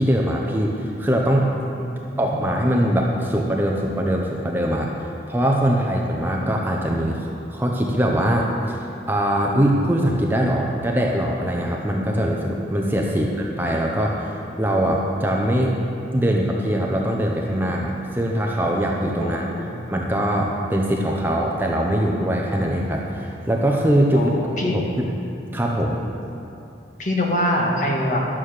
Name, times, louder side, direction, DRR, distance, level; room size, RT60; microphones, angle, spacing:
voice 1, 0.0-1.5 2.2-8.8 9.1-15.7 16.1-19.5 19.9-24.3 24.6-25.1 25.5-26.0, equal, 10° right, -1 dB, 0.7 m, -22 dB
voice 2, 1.6-2.4 19.2-19.7 24.1-24.8 27.0-28.2, left 1 dB, 45° left, -1 dB, 1.6 m, -25 dB
11.5 x 7.5 x 6.6 m, 2.7 s
head